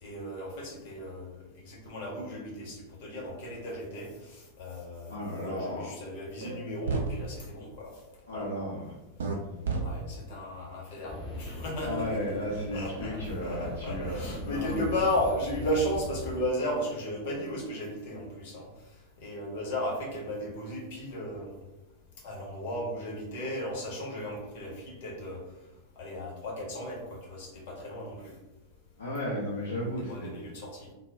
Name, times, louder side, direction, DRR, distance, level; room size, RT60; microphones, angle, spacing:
voice 1, 0.0-7.9 8.3-8.5 9.8-18.7 19.2-21.6 22.2-25.4 26.0-28.3 30.0-30.9, equal, 50° left, -2 dB, 0.9 m, -35 dB
voice 2, 5.1-5.9 8.3-8.9 11.8-14.9 29.0-30.3, equal, 70° left, -5 dB, 0.5 m, -34 dB
sound 1, 6.4-6.6 6.9-7.1 9.2-9.3 9.6-9.8, right 4 dB, 65° right, 0.4 m, -29 dB
sound 2, 11.1-16.4, left 1 dB, 25° left, 0.6 m, -40 dB
2.2 x 2.0 x 3.4 m, 1.0 s
figure-of-eight pair, 90°, 0 cm